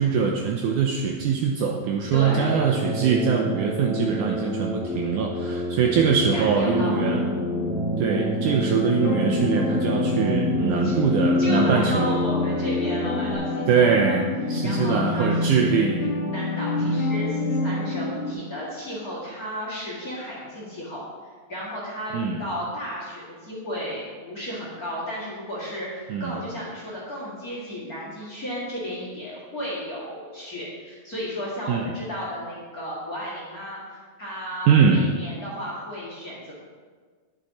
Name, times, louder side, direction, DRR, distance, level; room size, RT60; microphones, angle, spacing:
voice 1, 0.0-7.2 8.0-12.1 13.7-16.1 16.8-17.0 22.1-22.4 26.1-26.4 31.7-31.8 34.7-35.0, right 6 dB, 80° right, 1 dB, 1.9 m, -22 dB
voice 2, 2.1-2.5 6.3-7.0 10.8-10.9 11.4-14.2 14.6-15.9 16.3-21.0 21.5-36.5, equal, 30° left, -6 dB, 2.0 m, -34 dB
sound 1, 2.1-13.3, equal, 55° right, 2.8 m, -30 dB
sound 2, 6.6-18.3, left 2 dB, 65° left, 1.8 m, -27 dB
10.5 x 8.4 x 4.2 m, 1.5 s
omnidirectional pair, 4.2 m